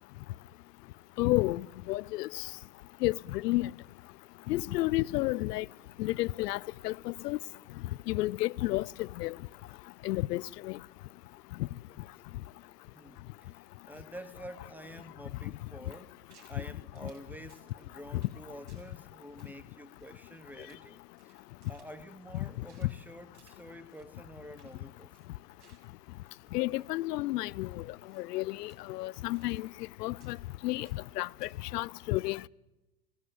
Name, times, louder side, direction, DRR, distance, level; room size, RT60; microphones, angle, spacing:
voice 1, 1.2-2.4 3.0-3.7 4.5-5.7 6.0-7.4 8.1-9.4 10.0-10.8 22.8-22.9 26.5-27.8 28.2-29.7 30.0-30.4 30.6-30.9 31.2-32.5, left 18 dB, 75° left, 0.6 m, -31 dB
voice 2, 12.9-16.2 16.5-21.4 21.7-25.1, right 1 dB, 5° right, 0.9 m, -48 dB
sound 1, 15.8-16.6 16.9-17.8 18.2-18.4 18.7-19.0 19.3-20.9 21.1-22.9 23.3-23.6 23.9-24.1 24.4-24.8 25.1-27.0 27.3-27.4 28.1-28.4 28.7-29.9 30.2-31.1 31.4-31.5, right 6 dB, 35° right, 5.5 m, -66 dB
20.0 x 17.5 x 7.9 m
supercardioid pair, 140°, 48 cm